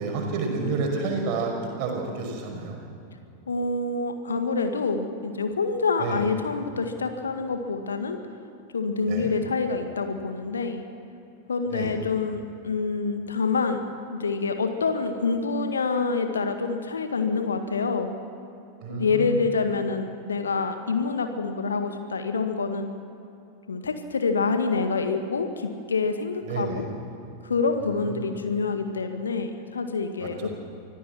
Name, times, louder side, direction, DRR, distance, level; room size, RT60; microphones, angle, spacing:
voice 1, 0.0-1.5 1.8-2.8 6.0-6.2 9.1-9.3 11.7-11.9 18.8-19.4 26.4-26.8 27.8-28.3 30.2-30.5, right 4 dB, 45° right, 1 dB, 5.6 m, -30 dB
voice 2, 3.5-8.2 8.7-10.8 11.5-13.8 14.1-18.1 18.9-22.9 23.7-26.9 27.4-30.5, left 4 dB, 70° left, 7 dB, 1.8 m, -27 dB
25.0 x 16.0 x 7.5 m, 2.8 s
figure-of-eight pair, 90°, 0 cm